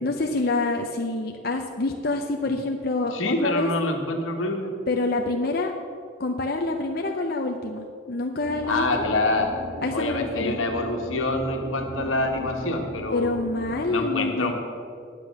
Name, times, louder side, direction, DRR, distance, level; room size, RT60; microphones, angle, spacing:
voice 1, 0.0-3.7 4.9-5.7 6.2-8.9 9.8-10.6 13.1-14.5, left 2 dB, 50° left, 3 dB, 0.6 m, -27 dB
voice 2, 3.1-4.8 8.7-9.5 9.9-13.3 13.9-14.5, left 2 dB, 90° left, 2 dB, 1.6 m, -26 dB
sound 1, 8.4-13.9, right 1 dB, 60° right, 1.3 m, -38 dB
10.5 x 8.3 x 6.2 m, 2.3 s
head